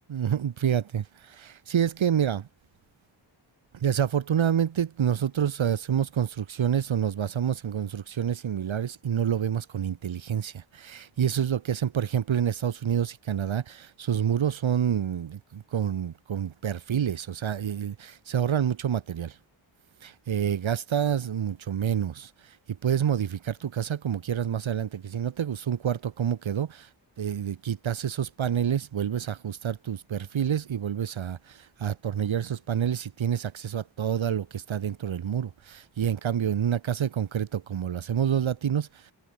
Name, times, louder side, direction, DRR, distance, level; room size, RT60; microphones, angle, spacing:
voice 1, 0.1-2.5 3.7-19.4 20.0-26.9 27.2-39.1, right 9 dB, 80° right, 3.7 m, -28 dB
wide cardioid pair, 160°, 46 cm